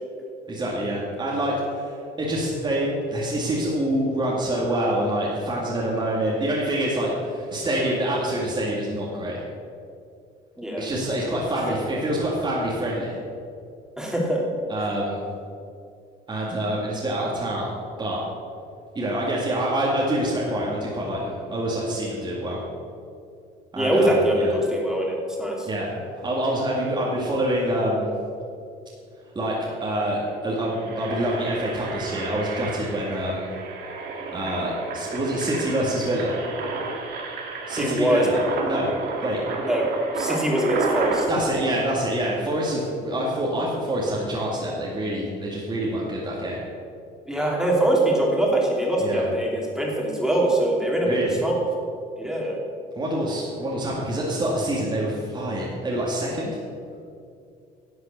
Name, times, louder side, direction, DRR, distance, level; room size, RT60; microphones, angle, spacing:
voice 1, 0.5-1.9 2.2-9.4 10.8-13.2 14.7-15.2 16.3-17.7 18.0-18.2 18.9-22.6 23.7-24.5 25.7-25.9 26.2-28.1 29.3-29.5 29.8-33.5 34.3-36.4 37.7-38.4 38.7-38.9 39.2-39.4 41.3-46.6 49.0-49.2 51.1-51.4 53.0-56.6, right 1 dB, 25° right, -5 dB, 2.3 m, -26 dB
voice 2, 10.6-10.9 11.7-11.8 14.0-14.4 23.8-25.7 37.8-38.3 39.6-39.9 40.1-41.3 47.3-51.6 52.2-52.6, right 1 dB, 5° right, -2 dB, 3.0 m, -23 dB
Engine, 29.9-30.1 30.5-41.2, right 4 dB, 70° right, 2.1 m, -32 dB
11.0 x 8.0 x 6.8 m, 2.4 s
cardioid pair, 110°, 17 cm